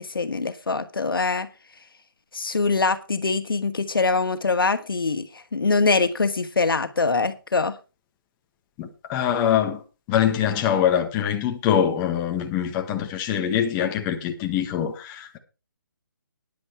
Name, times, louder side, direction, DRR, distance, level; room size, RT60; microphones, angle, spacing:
voice 1, 0.0-1.5 2.3-7.8, left 4 dB, 85° left, 1.8 m, -23 dB
voice 2, 8.8-9.8 10.1-15.4, left 9 dB, 20° left, 1.6 m, -24 dB
11.5 x 10.5 x 4.5 m
hypercardioid pair, 155°, 12 cm